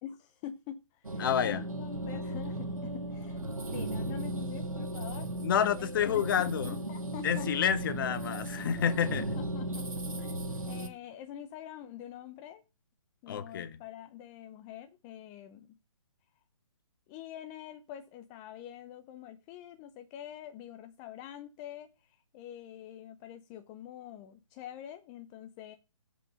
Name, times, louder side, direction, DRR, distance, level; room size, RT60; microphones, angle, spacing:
voice 1, 0.0-5.3 5.8-7.5 8.5-8.9 9.2-9.9 10.2-10.3 10.7-12.6 13.2-15.8 17.1-25.7, left 10 dB, 20° left, 0.6 m, -46 dB
sound 1, 1.0-10.9, right 1 dB, 90° right, 1.6 m, -36 dB
voice 2, 1.2-1.6 5.4-6.7 7.2-9.4 13.3-13.7, left 9 dB, 40° left, 1.0 m, -29 dB
7.8 x 5.3 x 5.3 m
figure-of-eight pair, 140°, 17 cm